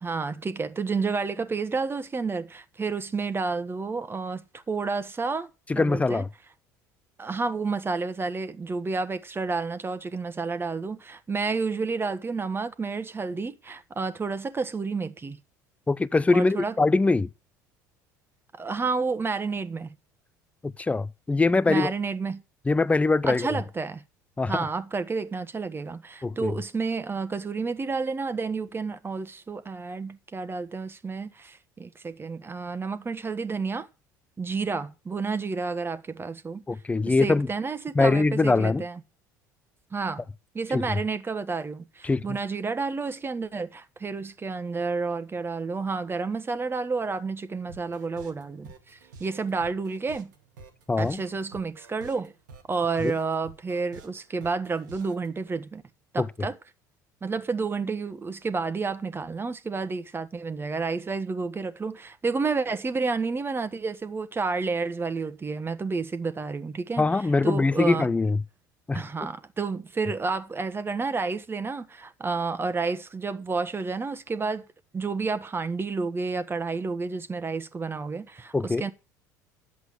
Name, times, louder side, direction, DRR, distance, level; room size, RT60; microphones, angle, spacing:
voice 1, 0.0-5.5 5.7-6.2 7.2-15.4 16.3-16.7 18.6-19.9 21.7-22.4 23.3-24.0 24.5-33.9 34.4-36.6 37.1-39.0 39.9-40.2 40.5-50.3 51.0-52.3 52.7-55.8 56.1-56.6 57.2-67.1 67.4-68.1 68.9-74.6 74.9-78.9, right 4 dB, 25° right, 1.4 m, -30 dB
voice 2, 5.7-6.3 15.9-17.3 20.6-21.9 22.7-23.5 24.4-24.7 26.2-26.5 36.7-37.5 37.9-38.8 40.7-41.0 42.0-42.4 50.9-51.2 53.0-53.1 56.2-56.3 67.0-68.4 68.9-69.0 78.5-78.8, left 3 dB, 15° left, 0.6 m, -23 dB
sound 1, 47.7-55.3, right 3 dB, 75° right, 2.1 m, -49 dB
11.0 x 7.9 x 6.4 m
hypercardioid pair, 65°, 10 cm